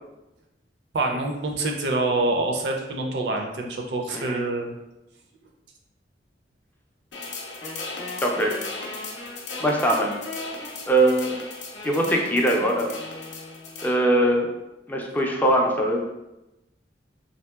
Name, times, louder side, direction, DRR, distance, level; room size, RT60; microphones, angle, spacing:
voice 1, 0.9-4.7, right 2 dB, 70° right, 2 dB, 0.4 m, -26 dB
sound 1, 7.1-14.0, left 3 dB, 85° left, 0.5 m, -38 dB
Wind instrument woodwind instrument, 7.6-13.9, left 1 dB, 30° left, 0.7 m, -39 dB
voice 2, 8.2-8.5 9.6-10.1 10.9-11.3 11.8-12.9 13.8-14.5 14.9-16.0, right 1 dB, 10° left, 0 dB, 0.3 m, -21 dB
2.9 x 2.7 x 2.3 m, 0.95 s
head